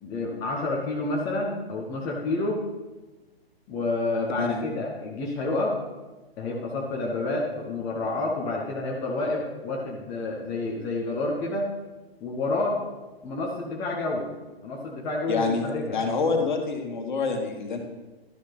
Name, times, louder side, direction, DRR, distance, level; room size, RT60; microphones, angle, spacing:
voice 1, 0.0-2.6 3.7-5.8 6.4-11.7 12.2-12.8 13.2-14.3 14.6-16.0, left 2 dB, 10° left, -2 dB, 0.6 m, -29 dB
voice 2, 15.3-15.7 15.9-17.8, left 4 dB, 50° left, 4 dB, 1.6 m, -26 dB
11.5 x 6.1 x 4.1 m, 1.2 s
figure-of-eight pair, 125°, 31 cm